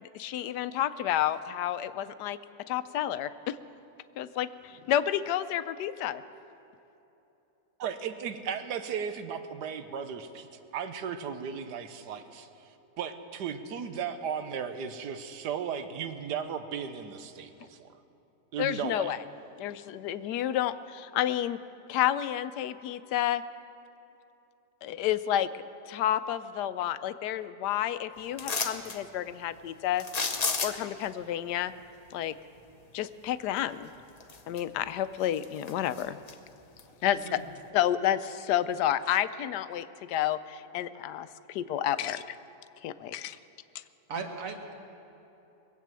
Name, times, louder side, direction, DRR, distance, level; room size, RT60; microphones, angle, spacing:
voice 1, 0.0-2.4 2.7-3.6 4.2-6.2 18.6-19.2 19.6-21.6 21.9-23.4 24.8-30.1 30.6-31.7 32.1-32.3 32.9-33.9 34.5-36.2 37.0-37.3 37.7-42.4 42.8-43.4, left 11 dB, 85° left, 13 dB, 1.2 m, -30 dB
voice 2, 7.8-10.5 10.7-12.7 13.0-17.9 18.5-19.1, right 7 dB, 85° right, 9 dB, 1.4 m, -36 dB
sound 1, 28.4-29.0 30.0-31.0 33.6-33.7 34.2-34.9 35.2-36.3 36.8-36.9, left 4 dB, 35° left, 0.6 m, -32 dB
voice 3, 37.1-37.4 44.1-44.7, right 4 dB, 55° right, 4 dB, 1.6 m, -38 dB
21.0 x 8.3 x 7.5 m, 3.0 s
omnidirectional pair, 1.7 m